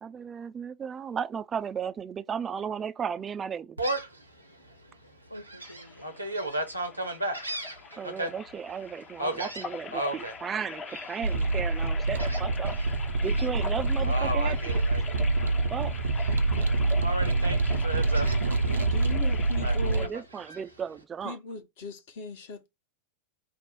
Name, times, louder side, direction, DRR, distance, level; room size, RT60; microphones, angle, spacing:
voice 1, 0.0-3.8 7.9-12.8 13.2-14.6 15.7-15.9 19.9-21.4, right 7 dB, 20° right, 0.4 m, -35 dB
Gull seagull, 3.8-4.2 4.7-4.8 5.3-8.3 9.2-10.3 10.9-11.3 12.2-12.9 13.2-13.5 14.0-15.6 15.9-16.6 17.0-18.4 19.6-20.6, right 1 dB, 90° right, 1.0 m, -34 dB
voice 2, 5.3-6.1 16.7-17.5 18.1-18.9 19.1-19.4, equal, 90° left, 0.4 m, -47 dB
sound 1, 5.6-20.1, left 5 dB, 25° left, 0.6 m, -42 dB
sound 2, 11.2-20.1, right 2 dB, 70° right, 0.6 m, -26 dB
voice 3, 18.8-20.1 21.2-22.7, left 2 dB, 50° left, 1.0 m, -38 dB
5.2 x 2.0 x 4.6 m
figure-of-eight pair, 90°, 0 cm